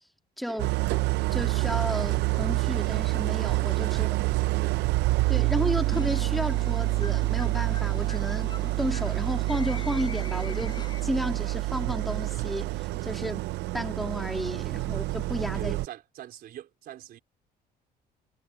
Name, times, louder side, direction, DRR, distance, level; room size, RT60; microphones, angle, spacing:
voice 1, 0.4-0.7 1.3-4.1 5.3-10.8 11.0-13.4 13.7-15.8, equal, ahead, 2.9 m, -32 dB
Idling, 0.6-15.9, right 20 dB, 85° right, 0.5 m, -27 dB
voice 2, 3.8-4.8 14.8-15.0 15.5-17.2, right 12 dB, 65° right, 4.1 m, -43 dB
sound 1, 5.9-11.3, left 5 dB, 25° left, 5.9 m, -43 dB
cardioid pair, 110°, 17 cm